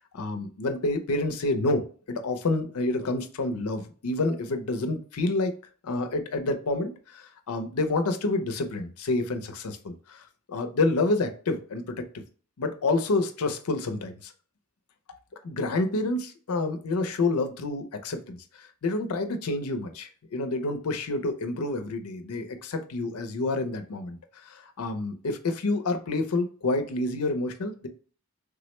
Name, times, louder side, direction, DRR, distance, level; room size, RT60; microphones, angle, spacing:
voice 1, 0.1-5.5 5.8-12.0 12.6-14.3 15.4-27.9, left 2 dB, 85° left, 7 dB, 0.5 m, -28 dB
3.5 x 2.1 x 3.0 m, 0.41 s
head